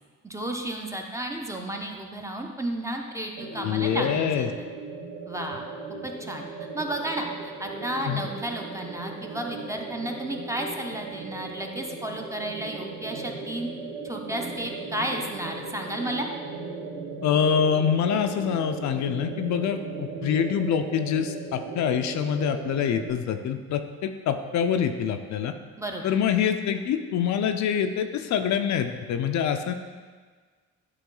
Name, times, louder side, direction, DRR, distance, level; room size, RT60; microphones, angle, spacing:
voice 1, 0.2-4.7 5.3-5.6 6.0-6.4 6.7-13.7 14.0-16.3 25.8-26.1, right 1 dB, 10° right, 2 dB, 0.6 m, -32 dB
sound 1, 3.4-23.1, right 4 dB, 75° right, 1.1 m, -37 dB
voice 2, 3.6-4.5 8.0-8.2 17.2-25.5 26.0-29.7, left 8 dB, 65° left, 7 dB, 0.5 m, -25 dB
9.1 x 3.1 x 3.8 m, 1.5 s
cardioid pair, 90°, 30 cm